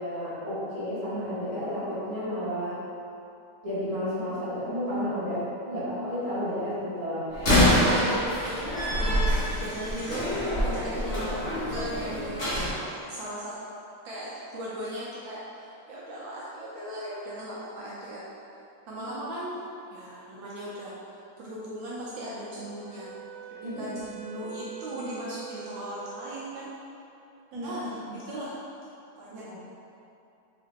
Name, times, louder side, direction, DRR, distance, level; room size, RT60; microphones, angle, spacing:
voice 1, 0.0-2.8 3.6-7.3 19.0-19.1 23.6-24.0 27.5-27.7 28.0-28.2 29.3-29.6, equal, 20° right, -12 dB, 1.0 m, -32 dB
Slam, 7.3-12.7, equal, 40° left, 0.9 m, -25 dB
voice 2, 9.6-13.6 14.0-18.2 18.9-20.9 21.4-23.1 23.5-26.7 27.5-28.5 29.2-29.6, right 1 dB, 70° right, -7 dB, 1.3 m, -38 dB
Wind instrument woodwind instrument, 22.4-26.4, right 9 dB, 90° right, 0.8 m, -44 dB
3.8 x 3.2 x 3.5 m, 2.7 s
omnidirectional pair, 2.3 m